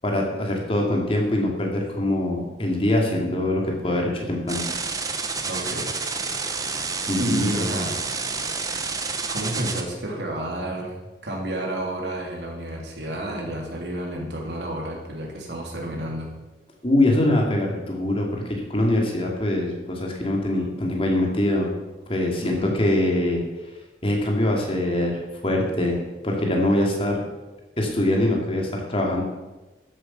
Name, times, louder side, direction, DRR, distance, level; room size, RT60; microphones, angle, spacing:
voice 1, 0.0-4.6 7.1-7.5 16.8-21.7 22.1-23.4 24.0-27.2 27.8-29.2, left 1 dB, 30° left, 0 dB, 2.4 m, -23 dB
sound 1, 4.5-9.8, right 4 dB, 20° right, 1.0 m, -29 dB
voice 2, 5.5-5.9 7.2-8.0 9.3-10.9 11.2-16.3 22.4-22.8, right 1 dB, 75° right, -1 dB, 3.2 m, -30 dB
13.0 x 8.1 x 5.8 m, 1.1 s
head